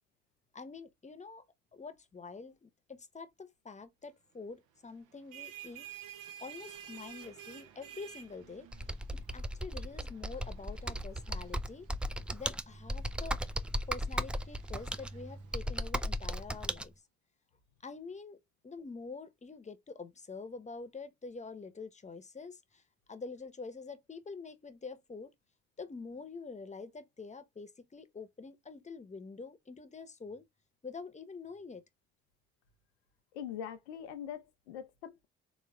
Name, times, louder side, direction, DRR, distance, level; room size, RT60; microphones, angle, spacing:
voice 1, 0.5-1.4 1.7-5.9 6.4-8.7 9.1-11.9 12.3-13.4 13.9-16.9 17.8-18.4 18.6-22.8 23.1-25.3 25.8-30.4 30.8-31.8, left 4 dB, 20° left, 0.9 m, -46 dB
sound 1, 5.1-16.4, right 9 dB, 70° right, 0.8 m, -53 dB
Computer keyboard, 8.7-16.9, equal, 5° right, 0.3 m, -36 dB
voice 2, 33.3-35.3, left 9 dB, 85° left, 0.6 m, -43 dB
3.8 x 3.1 x 2.3 m
hypercardioid pair, 45°, 32 cm